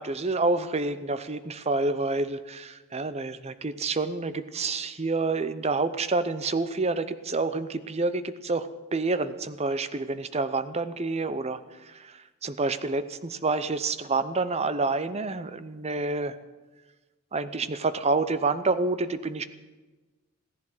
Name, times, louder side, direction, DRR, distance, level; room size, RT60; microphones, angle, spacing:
voice 1, 0.0-16.4 17.3-19.4, right 3 dB, 30° right, 12 dB, 0.7 m, -28 dB
15.5 x 11.0 x 7.8 m, 1.2 s
head